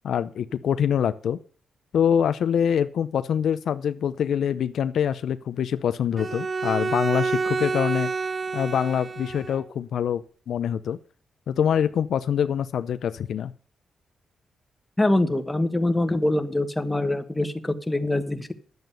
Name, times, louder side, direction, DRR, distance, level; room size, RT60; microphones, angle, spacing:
voice 1, 0.0-1.4 1.9-8.1 8.5-11.0 11.5-13.5, left 8 dB, 70° left, 13 dB, 0.5 m, -25 dB
Bowed string instrument, 6.2-9.7, right 4 dB, 30° right, 0.5 m, -28 dB
voice 2, 15.0-18.5, left 1 dB, 10° left, 8 dB, 1.2 m, -24 dB
10.5 x 7.9 x 6.8 m, 0.43 s
cardioid pair, 100°, 0 cm